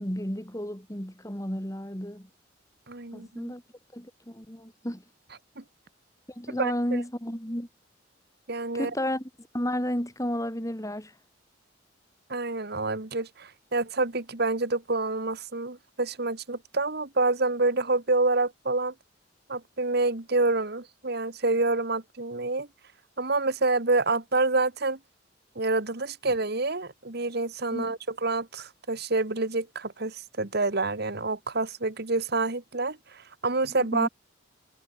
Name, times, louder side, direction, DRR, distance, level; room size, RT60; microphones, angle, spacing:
voice 1, 0.0-2.3 3.1-3.6 3.9-5.0 6.3-7.7 8.7-11.1 27.7-27.9 33.9-34.1, equal, 15° left, 5.0 m, -32 dB
voice 2, 2.9-3.5 5.6-5.7 6.5-6.7 8.5-8.9 12.3-18.9 19.5-22.7 23.2-25.0 25.6-34.1, right 3 dB, 55° right, 1.8 m, -27 dB
head